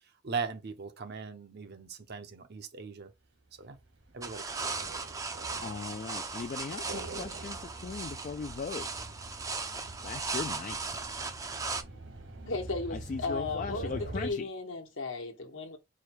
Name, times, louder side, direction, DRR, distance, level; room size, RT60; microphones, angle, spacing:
voice 1, 0.2-3.1 3.6-3.8 4.1-4.6, right 5 dB, 55° right, 0.7 m, -39 dB
sound 1, 3.7-14.3, right 2 dB, 75° right, 1.7 m, -45 dB
sound 2, 4.2-11.8, right 4 dB, 15° right, 0.5 m, -37 dB
voice 2, 5.6-7.6 7.8-8.9 10.0-11.0 13.1-14.4, left 5 dB, 40° left, 0.3 m, -38 dB
voice 3, 12.5-15.8, left 3 dB, 70° left, 1.1 m, -35 dB
4.8 x 2.3 x 4.4 m
head